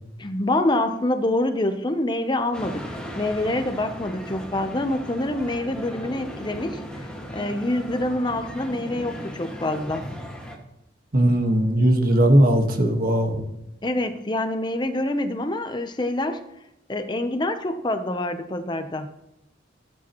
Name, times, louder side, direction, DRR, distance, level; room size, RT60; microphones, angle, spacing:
voice 1, 0.2-6.8 7.3-10.0 13.8-16.4 16.9-19.1, left 1 dB, 25° left, 8 dB, 0.7 m, -26 dB
sound 1, 2.5-10.6, equal, 5° left, 1.8 m, -37 dB
voice 2, 11.1-13.4, right 1 dB, 50° right, 4 dB, 1.5 m, -18 dB
16.5 x 8.6 x 3.0 m, 0.83 s
head